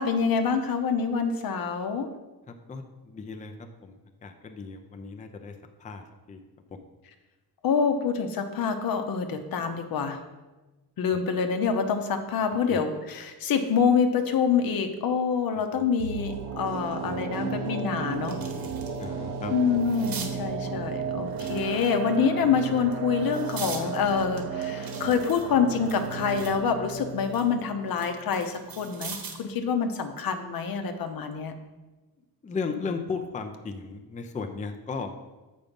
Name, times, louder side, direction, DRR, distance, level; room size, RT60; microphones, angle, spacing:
voice 1, 0.0-2.1 7.6-10.2 11.0-18.4 19.5-31.5, left 6 dB, 65° left, 7 dB, 0.9 m, -26 dB
voice 2, 2.5-6.4 6.7-6.8 12.7-12.8 15.5-15.9 17.1-17.2 19.0-19.5 32.4-35.1, left 4 dB, 20° left, 5 dB, 0.5 m, -36 dB
sound 1, 16.0-29.1 29.4-29.5, right 5 dB, 85° right, 1.1 m, -34 dB
sound 2, 17.0-17.1 17.6-19.1 19.4-20.3 21.3-22.2 22.8-23.8 24.4-26.6 27.0-29.5 30.9-31.1, right 6 dB, 60° right, 1.4 m, -42 dB
7.1 x 5.2 x 5.2 m, 1.2 s
cardioid pair, 140°, 38 cm